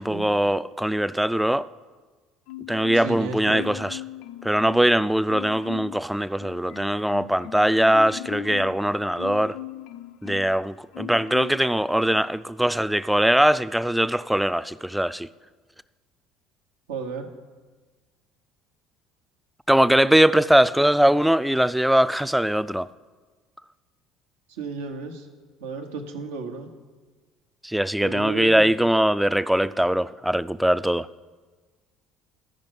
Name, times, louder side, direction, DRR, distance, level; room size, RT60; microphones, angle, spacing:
voice 1, 0.0-1.7 2.7-4.0 4.4-9.6 10.2-15.3 19.7-22.9 27.6-31.1, right 1 dB, 5° right, 0.3 m, -21 dB
Marimba xylophone, 2.5-3.2 3.5-5.0 5.3-6.0 6.4-10.6 10.9-11.7 12.0-12.2, left 13 dB, 75° left, 0.4 m, -39 dB
voice 2, 2.9-3.7 16.9-17.3 24.5-25.3 25.6-26.7 28.0-28.7, right 5 dB, 90° right, 1.0 m, -33 dB
13.5 x 5.2 x 5.3 m
supercardioid pair, 80°, 0 cm